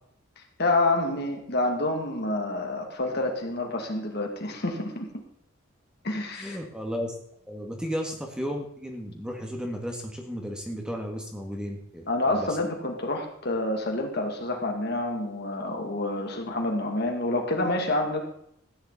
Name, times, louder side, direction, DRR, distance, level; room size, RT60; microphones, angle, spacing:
voice 1, 0.4-5.1 6.0-6.6 12.1-18.2, left 2 dB, 50° left, 2 dB, 2.4 m, -28 dB
voice 2, 6.3-7.1 7.5-12.5, equal, 5° right, 1 dB, 1.6 m, -34 dB
15.0 x 10.0 x 4.1 m, 0.73 s
head